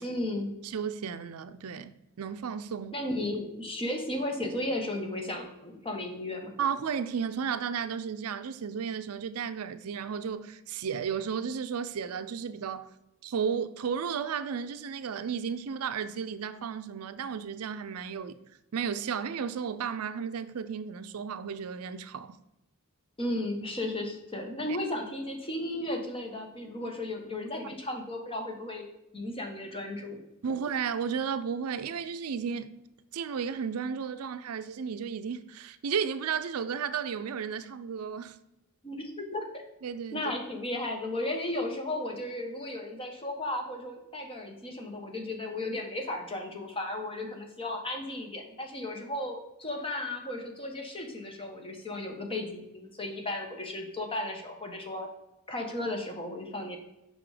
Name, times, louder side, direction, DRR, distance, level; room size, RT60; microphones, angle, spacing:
voice 1, 0.0-0.5 2.9-6.5 23.2-28.9 29.1-30.2 38.8-39.0 39.3-39.4 40.1-55.1 55.5-56.8, left 1 dB, 25° left, 1.2 m, -34 dB
voice 2, 0.6-3.0 6.6-12.9 13.2-18.4 18.7-22.4 30.4-32.8 33.1-38.4 39.8-40.2, right 7 dB, 80° right, 0.5 m, -33 dB
5.9 x 5.2 x 4.9 m
head